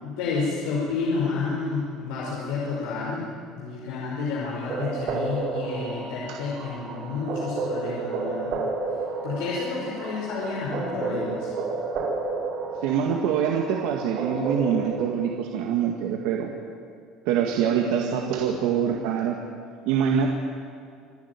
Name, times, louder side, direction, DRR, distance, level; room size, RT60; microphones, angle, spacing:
voice 1, 0.0-8.6 9.2-11.5, left 4 dB, 90° left, -5 dB, 5.3 m, -30 dB
sound 1, 4.7-15.0, right 3 dB, 50° right, 6.4 m, -31 dB
voice 2, 12.8-16.5 17.3-19.4 19.9-20.3, right 8 dB, 75° right, 1 dB, 2.0 m, -24 dB
26.5 x 11.5 x 9.8 m, 2.2 s
cardioid pair, 150°, 0 cm